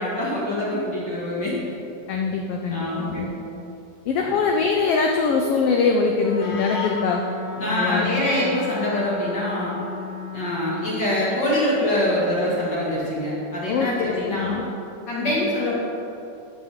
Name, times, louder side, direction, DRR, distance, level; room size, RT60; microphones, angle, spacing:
voice 1, 0.0-1.6 2.7-3.3 4.2-4.3 7.6-9.7 10.3-14.6 15.1-15.7, left 1 dB, 40° left, -7 dB, 2.4 m, -24 dB
voice 2, 2.1-3.3 4.1-7.2 7.7-8.2 13.7-14.7 15.2-15.4, left 4 dB, 80° left, 2 dB, 1.3 m, -23 dB
Wind instrument woodwind instrument, 6.2-11.0, left 4 dB, 60° left, 2.5 m, -34 dB
14.5 x 7.7 x 3.7 m, 2.7 s
omnidirectional pair, 3.5 m